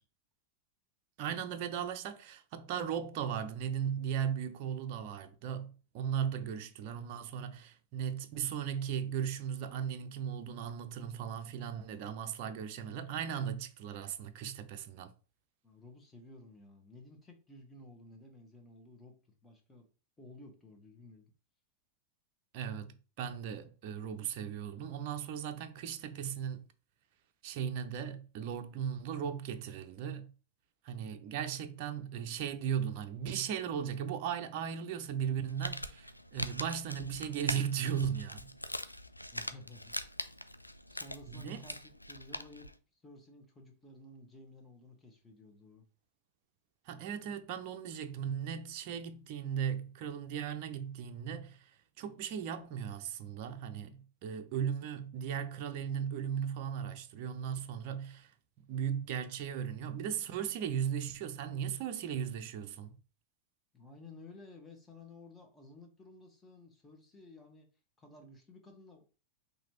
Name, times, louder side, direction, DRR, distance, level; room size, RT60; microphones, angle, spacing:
voice 1, 1.2-15.1 22.5-26.6 27.4-30.3 30.8-38.5 41.3-41.6 46.9-51.7 52.0-58.3 58.7-62.9, right 8 dB, 45° right, 0.6 m, -37 dB
voice 2, 15.6-19.1 19.4-19.9 20.2-21.3 39.3-40.0 40.9-45.8 63.7-67.7 68.0-69.2, left 2 dB, 15° left, 1.3 m, -54 dB
Crumpling crinkling, 35.3-42.7, left 1 dB, 85° left, 0.3 m, -42 dB
5.8 x 2.7 x 3.0 m
figure-of-eight pair, 90°, 0 cm